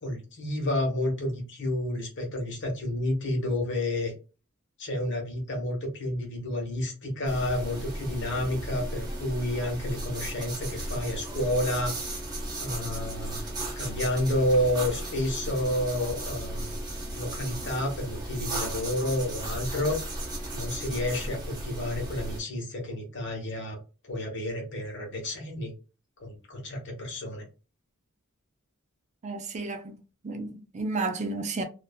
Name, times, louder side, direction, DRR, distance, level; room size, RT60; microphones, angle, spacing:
voice 1, 0.0-4.1 4.8-11.9 12.6-16.8 17.1-20.0 20.5-23.8 24.1-25.7 26.2-27.4, left 1 dB, 60° left, 1.1 m, -30 dB
sound 1, 7.2-22.4, right 1 dB, 20° right, 0.9 m, -35 dB
voice 2, 29.2-31.6, right 3 dB, 35° right, 0.4 m, -32 dB
2.5 x 2.4 x 2.2 m
head